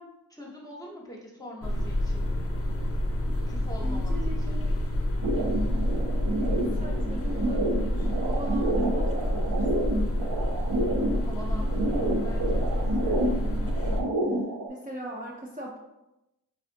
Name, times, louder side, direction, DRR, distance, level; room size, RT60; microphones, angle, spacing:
voice 1, 0.0-2.3 3.5-4.7 11.2-13.3, equal, 10° left, -3 dB, 0.9 m, -44 dB
sound 1, 1.6-14.0, equal, 40° left, 0.5 m, -28 dB
voice 2, 3.8-4.8 6.4-10.0 14.7-15.8, equal, 25° right, -3 dB, 0.5 m, -40 dB
sound 2, 5.2-14.7, right 1 dB, 85° right, 0.5 m, -29 dB
4.4 x 2.4 x 2.5 m, 0.93 s
wide cardioid pair, 45°, 36 cm